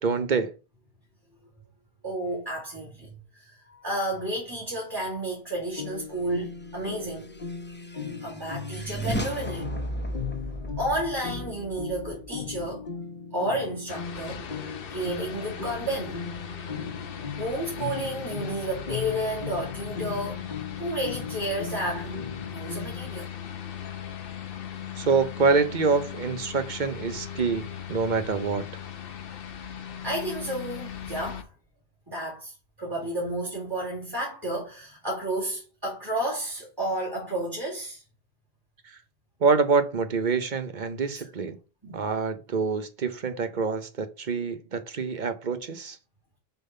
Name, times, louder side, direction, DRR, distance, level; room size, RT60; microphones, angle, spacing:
voice 1, 0.0-0.5 25.0-28.6 39.4-41.6 41.9-46.0, right 5 dB, 50° right, 0.9 m, -26 dB
voice 2, 2.0-7.2 8.2-9.7 10.8-12.9 13.3-14.4 14.9-16.2 17.4-20.4 20.8-22.1 22.5-23.3 30.0-31.5 32.1-38.0 41.1-41.2 41.8-42.0, right 1 dB, 20° right, 2.4 m, -31 dB
sound 1, 5.8-23.2, left 6 dB, 50° left, 1.3 m, -38 dB
sound 2, 7.0-12.6, right 1 dB, 10° left, 0.6 m, -35 dB
sound 3, 13.9-31.4, left 9 dB, 65° left, 1.0 m, -38 dB
6.8 x 3.9 x 5.5 m
omnidirectional pair, 1.1 m